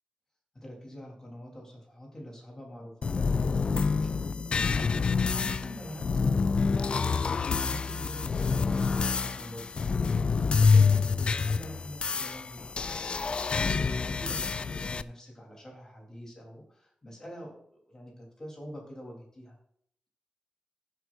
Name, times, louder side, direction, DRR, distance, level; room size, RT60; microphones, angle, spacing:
voice 1, 0.5-6.7 7.6-9.7 10.2-19.6, equal, 25° left, -1 dB, 3.6 m, -45 dB
sound 1, 3.0-15.0, left 5 dB, 40° left, 0.4 m, -27 dB
15.5 x 8.0 x 2.6 m, 0.68 s
wide cardioid pair, 175°, 3 cm